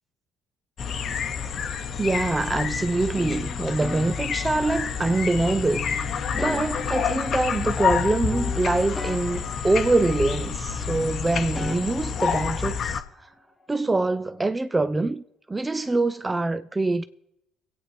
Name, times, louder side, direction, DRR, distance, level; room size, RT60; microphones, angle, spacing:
sound 1, 0.8-13.0, left 7 dB, 50° left, 0.8 m, -28 dB
voice 1, 2.0-5.8 6.3-13.3 13.7-17.0, right 2 dB, 20° right, 0.4 m, -24 dB
sound 2, 3.1-5.1 5.7-8.0 8.3-10.6 10.9-12.9, left 1 dB, 5° left, 1.7 m, -39 dB
24.5 x 8.5 x 3.3 m
hypercardioid pair, 55°, 0 cm